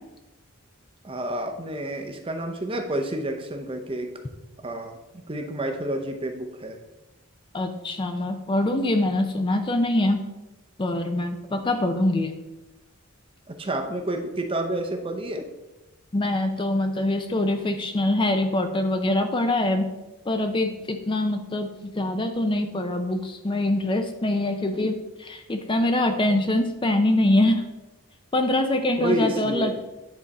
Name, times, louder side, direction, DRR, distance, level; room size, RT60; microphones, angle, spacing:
voice 1, 1.0-4.1 4.6-6.8 11.5-11.6 13.5-15.5 29.0-29.7, right 1 dB, 25° right, 5 dB, 0.7 m, -29 dB
voice 2, 7.5-10.2 10.8-12.3 16.1-19.9 20.3-27.6 28.3-29.8, left 1 dB, 20° left, 6 dB, 0.5 m, -24 dB
9.7 x 4.0 x 4.1 m, 1.0 s
head